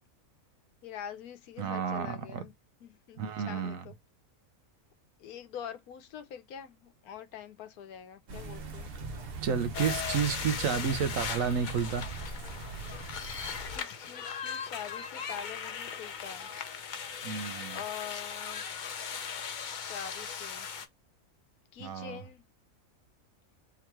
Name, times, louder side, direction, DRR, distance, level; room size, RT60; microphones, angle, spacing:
voice 1, 0.8-2.5 2.8-3.9 5.2-8.9 13.7-16.5 17.7-18.6 19.8-20.7 21.7-22.4, left 9 dB, 85° left, 1.2 m, -44 dB
voice 2, 1.6-2.4 3.2-3.8 9.4-12.1 17.2-17.8 21.8-22.2, right 7 dB, 70° right, 1.1 m, -31 dB
sound 1, 8.3-13.8, right 3 dB, 50° right, 0.9 m, -41 dB
sound 2, 9.7-20.9, left 7 dB, 55° left, 0.5 m, -38 dB
3.7 x 3.0 x 4.5 m
omnidirectional pair, 1.5 m